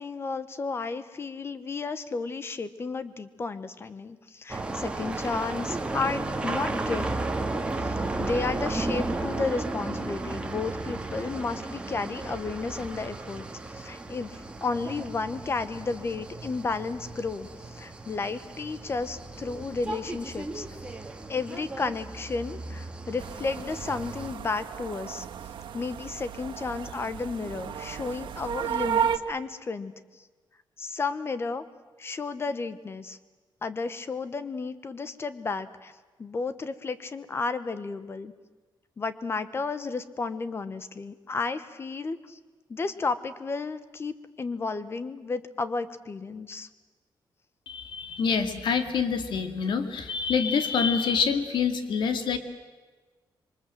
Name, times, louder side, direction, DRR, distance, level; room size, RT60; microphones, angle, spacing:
voice 1, 0.0-7.1 7.8-21.0 21.3-25.3 25.7-30.2 30.8-31.6 32.0-33.2 33.6-35.9 36.2-38.3 39.0-42.4 42.7-46.7, left 4 dB, 30° left, 14 dB, 1.1 m, -33 dB
sound 1, 4.5-24.3, right 2 dB, 15° right, 1.9 m, -34 dB
sound 2, 23.2-29.2, right 8 dB, 85° right, 1.6 m, -33 dB
voice 2, 47.7-52.4, left 6 dB, 75° left, 8 dB, 2.3 m, -26 dB
26.5 x 24.0 x 7.8 m, 1.3 s
wide cardioid pair, 175°, 8 cm